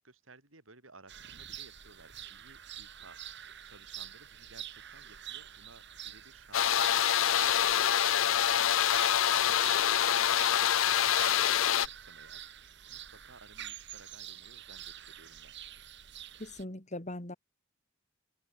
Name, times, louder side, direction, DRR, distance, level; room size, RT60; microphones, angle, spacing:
voice 1, 0.0-3.2 3.6-15.5, right 3 dB, 85° right, 7.1 m, -58 dB
sound 1, 1.1-16.6, right 10 dB, 60° right, 3.6 m, -47 dB
sound 2, 6.5-11.9, left 10 dB, 85° left, 0.6 m, -26 dB
voice 2, 16.4-17.4, left 1 dB, 35° left, 3.4 m, -40 dB
head